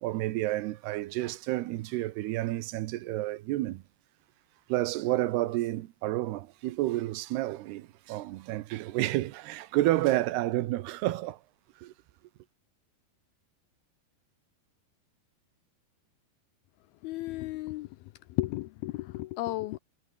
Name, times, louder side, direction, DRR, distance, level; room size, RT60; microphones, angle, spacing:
voice 1, 0.0-3.8 4.7-11.4 11.8-11.9, right 16 dB, 80° right, 3.0 m, -30 dB
voice 2, 17.0-17.9 18.3-19.8, left 18 dB, 80° left, 2.5 m, -33 dB
omnidirectional pair, 4.7 m